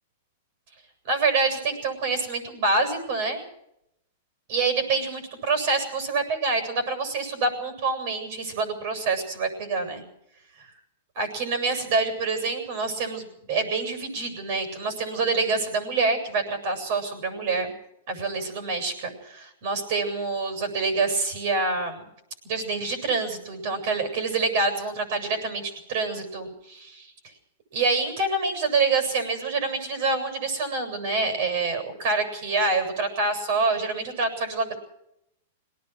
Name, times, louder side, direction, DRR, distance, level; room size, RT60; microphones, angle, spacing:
voice 1, 1.0-3.4 4.5-10.0 10.6-10.7 11.1-17.7 18.1-22.0 22.4-27.1 27.7-34.8, right 3 dB, 55° right, 8 dB, 7.8 m, -26 dB
23.5 x 18.5 x 6.3 m, 0.80 s
hypercardioid pair, 135°, 0 cm